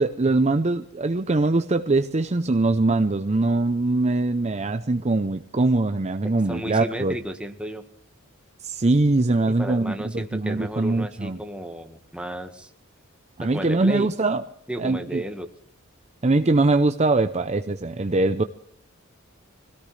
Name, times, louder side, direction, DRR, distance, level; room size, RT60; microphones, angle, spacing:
voice 1, 0.0-7.2 8.6-11.4 13.4-14.4 14.8-15.2 16.2-18.4, right 2 dB, 30° right, 8 dB, 0.6 m, -22 dB
voice 2, 6.5-7.8 9.6-12.7 13.4-14.1 14.7-15.5, equal, 5° right, 5 dB, 1.5 m, -33 dB
24.5 x 17.0 x 3.3 m, 0.64 s
head